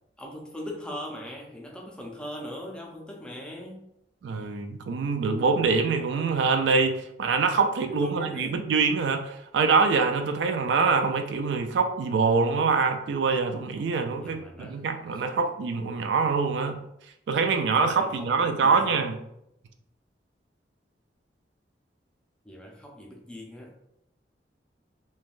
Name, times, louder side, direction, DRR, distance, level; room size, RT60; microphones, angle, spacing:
voice 1, 0.2-3.9 7.9-8.7 14.1-15.2 17.8-19.0 22.4-23.7, left 1 dB, 5° left, -1 dB, 0.4 m, -40 dB
voice 2, 4.2-16.8 17.3-19.2, right 4 dB, 75° right, 6 dB, 0.3 m, -24 dB
3.2 x 2.2 x 2.4 m, 0.79 s
head